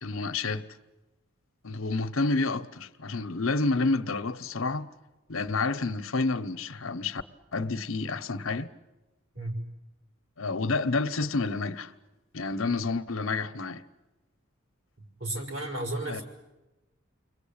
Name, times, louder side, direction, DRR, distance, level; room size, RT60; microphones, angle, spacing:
voice 1, 0.0-0.6 1.6-4.9 5.3-7.2 7.5-8.7 10.4-11.9 12.3-13.8 16.1-16.2, left 3 dB, 85° left, 1.1 m, -29 dB
voice 2, 15.0-16.2, right 1 dB, 70° right, 6.1 m, -33 dB
29.5 x 22.5 x 8.8 m
head